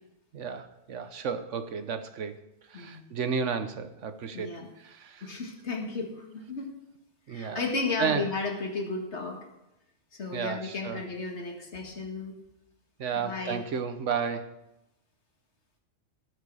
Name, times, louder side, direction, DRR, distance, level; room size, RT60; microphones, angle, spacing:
voice 1, 0.3-2.4 2.7-4.5 4.8-5.3 7.3-7.6 8.0-8.2 10.3-11.0 13.0-14.5, right 6 dB, 75° right, 9 dB, 1.2 m, -32 dB
voice 2, 4.3-4.7 5.2-6.7 7.3-9.4 10.1-12.3 13.1-13.6, left 3 dB, 65° left, 1 dB, 2.3 m, -34 dB
18.5 x 6.6 x 4.8 m, 0.90 s
omnidirectional pair, 1.3 m